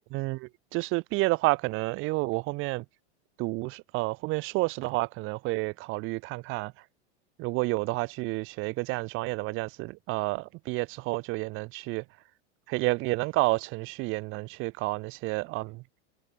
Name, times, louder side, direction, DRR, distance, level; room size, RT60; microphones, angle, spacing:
voice 1, 0.1-2.8 3.4-6.7 7.4-12.0 12.7-15.8, right 23 dB, 35° right, 2.2 m, -30 dB
open air
supercardioid pair, 150°, 35 cm